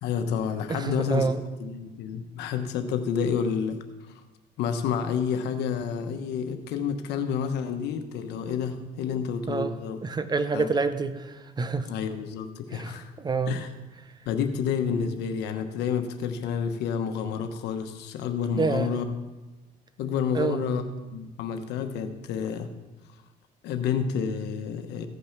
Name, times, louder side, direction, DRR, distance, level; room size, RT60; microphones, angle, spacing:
voice 1, 0.0-1.3 1.6-3.8 4.6-10.0 10.5-10.7 11.9-13.1 13.5-13.7 14.3-19.1 20.0-20.8 21.1-22.7 23.6-25.1, left 7 dB, 80° left, 7 dB, 1.1 m, -29 dB
voice 2, 0.7-1.4 9.5-9.8 10.0-11.9 12.7-13.6 18.6-18.9 20.3-20.6, right 4 dB, 25° right, 11 dB, 0.8 m, -28 dB
15.5 x 5.5 x 5.9 m, 1.1 s
cardioid pair, 110°, 17 cm